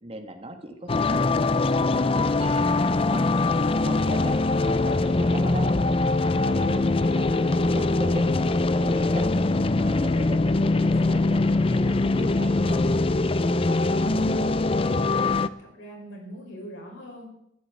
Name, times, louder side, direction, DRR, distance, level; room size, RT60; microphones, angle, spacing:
voice 1, 0.0-2.6 3.1-5.7 6.4-8.4 8.7-9.3 9.8-12.8, right 1 dB, 30° right, 6 dB, 1.6 m, -38 dB
sound 1, 0.9-15.5, left 2 dB, 30° left, 0.5 m, -22 dB
voice 2, 7.1-7.6 14.0-15.3 15.6-17.3, equal, 85° left, 0 dB, 5.6 m, -41 dB
14.5 x 11.5 x 8.1 m, 0.81 s
head